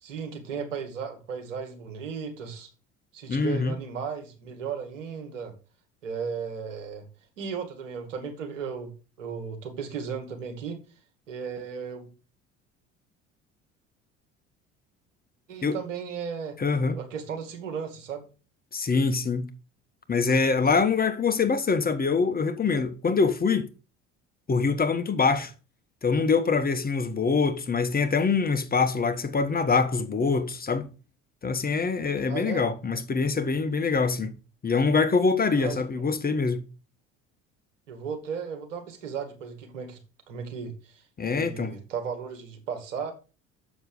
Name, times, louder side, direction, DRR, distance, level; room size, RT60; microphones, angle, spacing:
voice 1, 0.0-2.7 3.1-5.5 6.0-7.0 7.4-8.9 9.2-10.8 11.3-12.1 15.5-16.6 17.0-18.2 32.3-32.6 35.6-35.9 37.9-40.0 40.3-41.0 41.3-43.1, right 6 dB, 75° right, 2.2 m, -35 dB
voice 2, 3.3-3.7 15.6-15.8 16.6-17.0 18.7-19.5 20.1-23.7 24.5-25.5 26.0-30.9 31.4-34.3 34.6-36.6 41.2-41.7, left 4 dB, 25° left, 1.2 m, -24 dB
7.0 x 6.2 x 6.6 m
hypercardioid pair, 60°, 38 cm